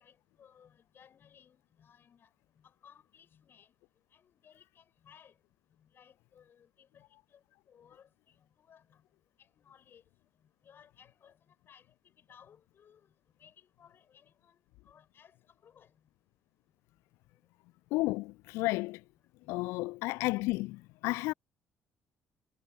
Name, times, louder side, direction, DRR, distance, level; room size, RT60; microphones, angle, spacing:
voice 1, 0.0-3.8 4.1-5.4 5.8-9.0 9.4-10.0 10.6-13.1 13.4-15.4 15.6-16.0 19.4-19.5, left 8 dB, 45° left, 5.9 m, -61 dB
voice 2, 17.9-19.0 19.5-21.3, left 22 dB, 60° left, 0.4 m, -32 dB
figure-of-eight pair, 45°, 5 cm